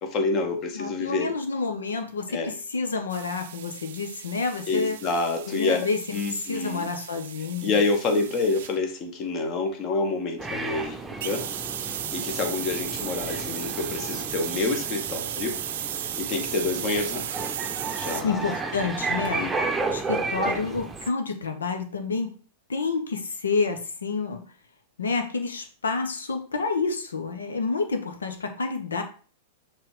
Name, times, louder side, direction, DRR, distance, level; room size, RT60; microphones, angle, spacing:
voice 1, 0.0-1.3 2.3-2.5 4.7-6.9 7.6-11.5 11.8-15.6 16.0-17.5 17.9-18.4 19.4-19.9, left 3 dB, 40° left, 4 dB, 1.6 m, -28 dB
voice 2, 0.7-5.0 5.5-7.8 18.2-19.5 19.9-22.4 22.7-24.4 25.0-29.0, left 4 dB, 75° left, 6 dB, 1.3 m, -29 dB
sound 1, 3.1-8.8 11.2-18.2, right 11 dB, 60° right, 0.5 m, -35 dB
sound 2, 10.4-21.1, right 3 dB, 10° right, 0.8 m, -33 dB
5.9 x 3.7 x 5.0 m, 0.39 s
figure-of-eight pair, 95°, 0 cm